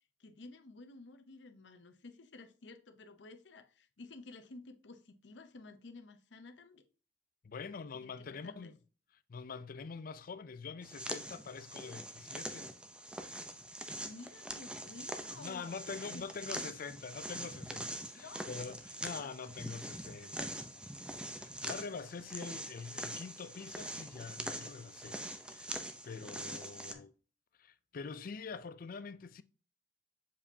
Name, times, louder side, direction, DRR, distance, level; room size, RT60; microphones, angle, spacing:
voice 1, 0.2-6.8 7.9-8.7 14.0-16.7 18.1-18.5 19.2-19.3 26.8-27.0, left 3 dB, 80° left, 0.7 m, -53 dB
voice 2, 7.4-8.8 9.3-12.7 13.2-13.4 15.4-20.9 21.4-25.7 26.0-27.1 27.6-29.4, left 5 dB, 50° left, 0.4 m, -45 dB
sound 1, 10.8-26.9, right 1 dB, 5° right, 0.6 m, -44 dB
7.1 x 4.9 x 2.7 m
head